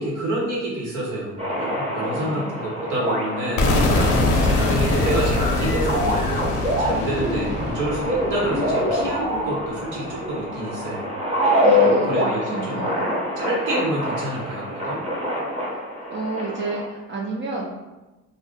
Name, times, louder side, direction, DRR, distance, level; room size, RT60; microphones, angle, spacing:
voice 1, 0.0-6.4 6.8-11.1 11.8-12.8 13.4-15.0, right 1 dB, 80° right, -4 dB, 1.0 m, -28 dB
sound 1, 1.4-16.9, left 1 dB, 20° right, 0.9 m, -25 dB
voice 2, 2.2-2.5 11.6-13.2 16.1-17.7, right 3 dB, 40° right, -2 dB, 0.5 m, -30 dB
sound 2, 3.6-9.4, left 2 dB, 85° left, 0.6 m, -23 dB
2.6 x 2.1 x 3.6 m, 1.1 s
cardioid pair, 90°, 30 cm